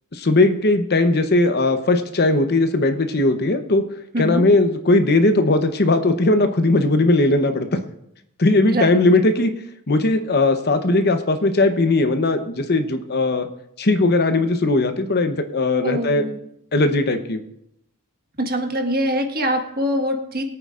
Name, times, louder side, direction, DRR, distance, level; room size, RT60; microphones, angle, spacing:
voice 1, 0.1-3.8 4.2-7.8 8.4-9.5 9.9-13.5 13.8-16.2 16.7-17.4, left 2 dB, 45° left, 7 dB, 0.9 m, -18 dB
voice 2, 15.8-16.4 18.4-20.4, equal, 45° right, 3 dB, 1.5 m, -23 dB
23.0 x 8.8 x 2.5 m, 0.78 s
head